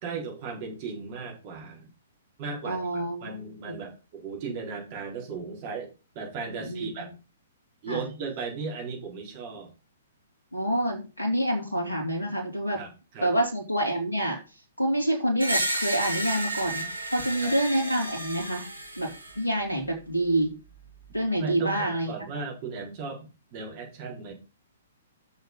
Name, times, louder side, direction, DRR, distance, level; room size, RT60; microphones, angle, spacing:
voice 1, 0.0-1.9 2.4-7.1 7.8-9.7 12.7-12.9 13.1-13.3 17.4-17.5 21.4-24.3, right 4 dB, 35° right, 0 dB, 4.3 m, -36 dB
voice 2, 2.6-3.8 6.5-6.9 7.9-8.0 10.5-12.8 13.2-14.4 14.8-16.9 17.1-18.6 19.0-19.1 19.4-20.5 21.1-22.1, right 1 dB, 75° left, 0 dB, 3.2 m, -27 dB
Screech, 15.4-19.4, right 1 dB, 80° right, 2.1 m, -32 dB
7.2 x 6.7 x 5.4 m, 0.31 s
figure-of-eight pair, 115°, 0 cm